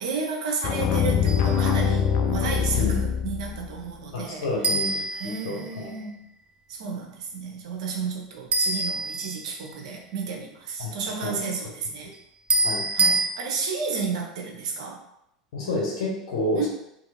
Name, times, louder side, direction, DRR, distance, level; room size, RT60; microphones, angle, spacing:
voice 1, 0.0-4.5 4.9-6.2 6.7-12.1 12.9-15.0 16.5-16.7, right 5 dB, 70° right, 1 dB, 0.6 m, -32 dB
sound 1, 0.6-3.8, left 7 dB, 50° left, 0.4 m, -23 dB
sound 2, 1.3-1.7 4.6-6.0 8.5-9.8 12.5-13.3, right 2 dB, 30° right, 0.4 m, -26 dB
voice 2, 4.1-5.9 10.8-10.9 11.2-11.4 12.6-12.8 15.5-16.7, left 2 dB, 70° left, -1 dB, 0.9 m, -29 dB
2.9 x 2.6 x 2.6 m, 0.80 s
hypercardioid pair, 85°, 4 cm